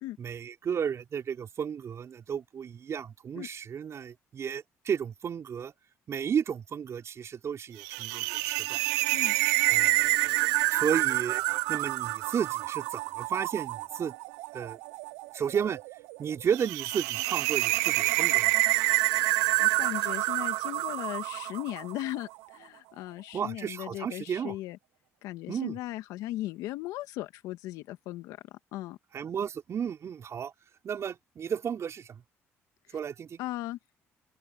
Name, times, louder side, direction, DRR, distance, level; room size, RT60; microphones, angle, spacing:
voice 1, 0.2-5.7 6.1-8.8 9.7-11.4 11.7-14.1 14.5-14.8 15.3-15.8 16.2-18.5 23.3-24.5 25.5-25.7 29.1-30.5 30.8-32.2 32.9-33.4, right 7 dB, 55° right, 4.7 m, -33 dB
sound 1, 7.8-22.1, right 21 dB, 90° right, 0.7 m, -28 dB
voice 2, 19.6-24.8 25.2-29.0 33.4-33.8, left 16 dB, 85° left, 1.8 m, -37 dB
open air
supercardioid pair, 65°, 6 cm